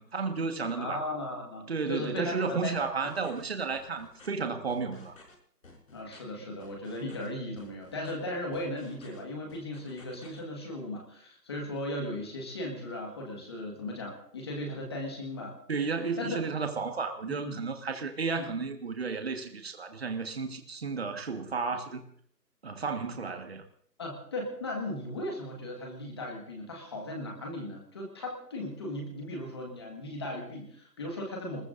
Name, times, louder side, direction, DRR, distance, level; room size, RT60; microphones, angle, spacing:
voice 1, 0.0-1.0 1.7-5.1 15.7-22.0 22.6-23.6, right 4 dB, 40° right, 6 dB, 1.6 m, -33 dB
voice 2, 0.7-3.1 5.9-15.6 16.2-16.4 17.2-17.6 18.3-18.5 24.0-31.6, left 1 dB, 15° left, 1 dB, 1.7 m, -37 dB
sound 1, 2.8-3.4 3.7-4.3 4.7-5.3 5.6-6.2 6.6-7.3 7.6-8.1 8.5-9.2 9.5-10.4, left 3 dB, 55° left, 5.7 m, -54 dB
25.0 x 21.0 x 2.6 m, 0.64 s
hypercardioid pair, 170°, 49 cm